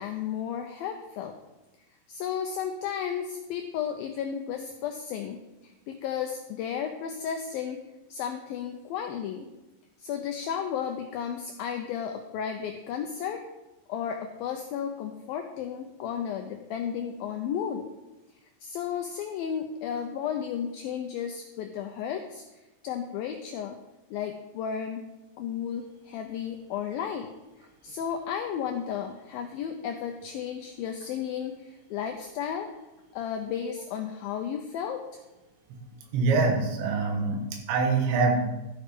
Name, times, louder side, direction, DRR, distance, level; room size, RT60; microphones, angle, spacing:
voice 1, 0.0-1.3 2.1-7.8 8.1-9.5 10.0-13.4 13.9-17.9 18.6-22.4 22.8-23.8 24.1-25.0 25.4-27.3 27.6-32.7 33.1-35.2, left 8 dB, 80° left, 4 dB, 2.1 m, -33 dB
voice 2, 36.1-38.4, right 4 dB, 85° right, 3 dB, 3.9 m, -24 dB
13.0 x 7.6 x 5.3 m, 1.0 s
omnidirectional pair, 5.0 m